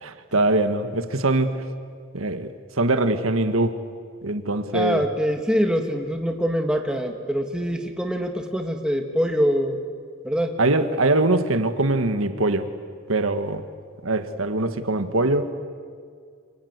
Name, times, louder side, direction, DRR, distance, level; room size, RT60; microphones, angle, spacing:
voice 1, 0.0-1.6 2.1-3.8 4.2-5.0 10.6-12.7 13.1-13.6 14.0-15.5, right 2 dB, 90° right, 8 dB, 1.7 m, -22 dB
voice 2, 4.7-9.8 10.2-10.6, equal, 5° right, 3 dB, 2.1 m, -24 dB
28.0 x 25.5 x 8.2 m, 2.1 s
head